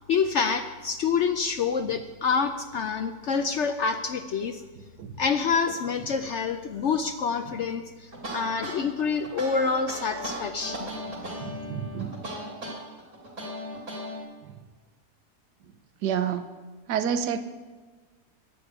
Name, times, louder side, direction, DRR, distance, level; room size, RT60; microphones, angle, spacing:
voice 1, 0.1-4.6 5.2-11.0, left 5 dB, 65° left, 8 dB, 0.7 m, -27 dB
sound 1, 8.1-14.2, equal, 50° right, 3.5 m, -36 dB
voice 2, 11.4-12.2 14.4-14.6 16.0-16.4 16.9-17.4, right 8 dB, 90° right, 10 dB, 1.4 m, -29 dB
10.5 x 7.2 x 9.2 m, 1.4 s
omnidirectional pair, 1.7 m